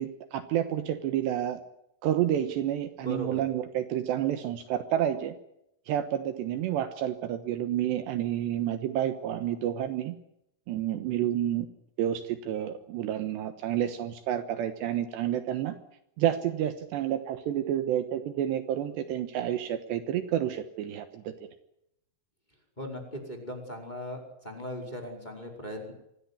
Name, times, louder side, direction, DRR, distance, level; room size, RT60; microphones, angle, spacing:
voice 1, 0.0-1.6 2.0-5.3 5.9-10.2 10.7-11.7 12.0-15.8 16.2-21.3, right 11 dB, 75° right, 9 dB, 3.2 m, -29 dB
voice 2, 3.0-3.4 22.8-25.9, equal, 10° left, 2 dB, 4.8 m, -38 dB
25.0 x 17.0 x 9.8 m, 0.80 s
omnidirectional pair, 5.4 m